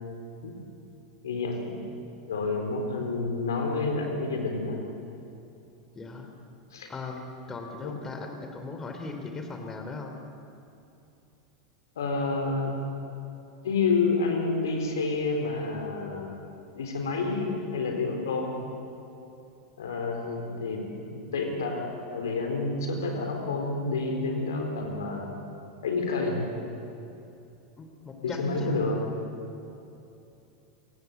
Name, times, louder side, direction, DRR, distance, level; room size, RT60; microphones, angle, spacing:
voice 1, 1.2-1.8 2.3-4.8 6.7-6.9 7.8-8.0 12.0-12.8 13.6-16.4 16.7-18.5 19.8-25.3 25.8-26.5 28.2-29.0, left 3 dB, 65° left, 3 dB, 4.1 m, -29 dB
voice 2, 5.9-6.3 6.9-10.1 27.8-28.7, left 3 dB, 20° left, 4 dB, 3.1 m, -38 dB
27.5 x 16.0 x 8.1 m, 2.8 s
figure-of-eight pair, 85°, 2 cm